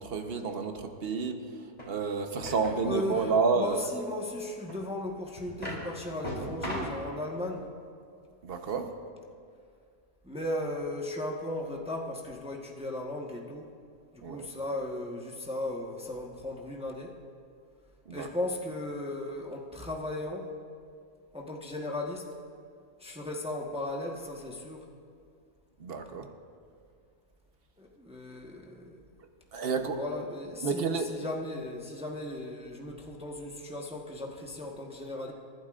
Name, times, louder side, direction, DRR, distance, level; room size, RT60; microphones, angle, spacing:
voice 1, 0.0-3.8 8.4-8.9 14.2-14.5 18.1-18.3 25.8-26.3 29.5-30.0 30.6-31.1, right 5 dB, 45° right, 6 dB, 1.0 m, -30 dB
sound 1, 1.8-1.9 2.5-2.8 4.7-4.8 5.4-5.8 6.2-7.0, equal, 25° left, 3.7 m, -36 dB
voice 2, 2.8-7.9 10.2-13.7 14.1-17.1 18.1-20.5 21.3-22.3 23.0-24.9 27.8-29.0 29.9-35.3, left 1 dB, 5° right, -1 dB, 0.9 m, -36 dB
29.0 x 12.0 x 2.5 m, 2.2 s
omnidirectional pair, 1.7 m